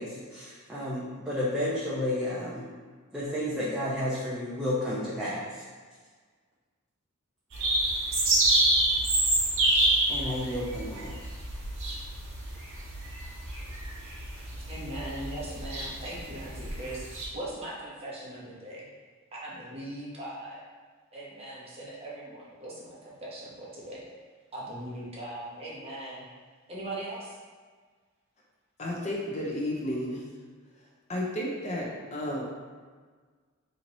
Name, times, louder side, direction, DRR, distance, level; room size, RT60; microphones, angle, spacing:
voice 1, 0.0-2.6 3.1-5.6 10.1-11.1, left 1 dB, 5° right, -10 dB, 0.5 m, -31 dB
sound 1, 7.5-17.3, right 2 dB, 65° right, 1.0 m, -28 dB
voice 2, 14.5-17.1 17.3-18.9 19.3-20.6 21.1-24.0 24.5-26.2 26.7-27.4, right 1 dB, 30° right, -6 dB, 0.8 m, -40 dB
voice 3, 28.8-30.2 31.1-32.4, left 1 dB, 35° left, -3 dB, 0.6 m, -32 dB
3.0 x 2.8 x 3.9 m, 1.5 s
head